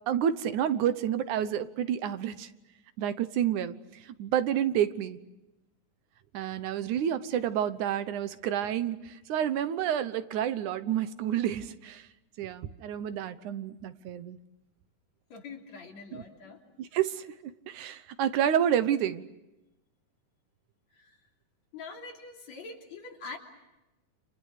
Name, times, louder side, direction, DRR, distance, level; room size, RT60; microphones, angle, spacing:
voice 1, 0.1-2.5 3.0-3.7 4.2-5.2 6.3-12.1 12.4-14.4 16.1-16.2 16.8-17.3 17.7-19.2, right 10 dB, 80° right, 12 dB, 2.5 m, -29 dB
voice 2, 15.3-16.6 21.0-21.1 21.7-23.4, left 4 dB, 65° left, 1 dB, 4.5 m, -44 dB
30.0 x 28.0 x 6.6 m, 0.97 s
omnidirectional pair, 3.5 m